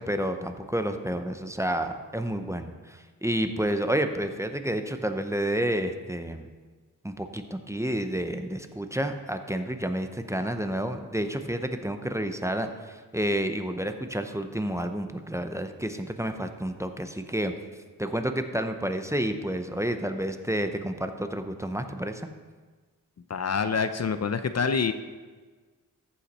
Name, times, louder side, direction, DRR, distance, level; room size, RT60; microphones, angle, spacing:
voice 1, 0.0-6.5 7.0-17.5 18.0-22.2, right 1 dB, 10° right, 7 dB, 0.7 m, -30 dB
voice 2, 23.3-24.9, left 5 dB, 50° left, 10 dB, 0.5 m, -26 dB
14.5 x 5.7 x 4.2 m, 1.4 s
cardioid pair, 60°, 35 cm